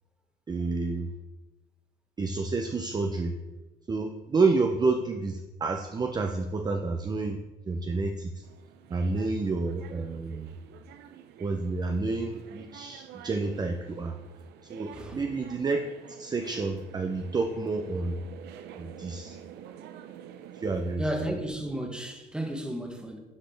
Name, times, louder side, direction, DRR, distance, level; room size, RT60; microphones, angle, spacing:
voice 1, 0.5-1.1 2.2-3.3 3.9-7.4 7.6-8.4 8.9-10.5 11.4-14.2 14.6-15.8 16.1-18.2 18.7-19.4 20.5-21.0, right 3 dB, 25° right, 0.5 m, -29 dB
sound 1, 8.4-21.0, right 9 dB, 80° right, 0.6 m, -48 dB
voice 2, 14.9-15.2 21.0-23.2, right 1 dB, 5° right, 1.0 m, -33 dB
11.5 x 4.1 x 3.4 m
cardioid pair, 110°, 17 cm